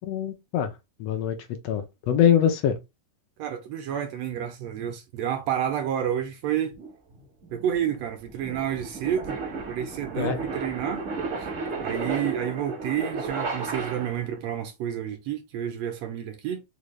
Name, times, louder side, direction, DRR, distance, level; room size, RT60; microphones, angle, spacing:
voice 1, 0.1-0.7 1.0-1.4 1.6-2.8 10.2-10.4, left 9 dB, 80° left, 1.5 m, -23 dB
voice 2, 3.4-6.7 7.5-9.4 9.7-11.0 11.4-11.5 11.8-16.6, right 10 dB, 80° right, 1.5 m, -30 dB
sound 1, 6.8-14.4, right 4 dB, 65° right, 0.7 m, -34 dB
4.9 x 2.2 x 3.0 m
omnidirectional pair, 3.4 m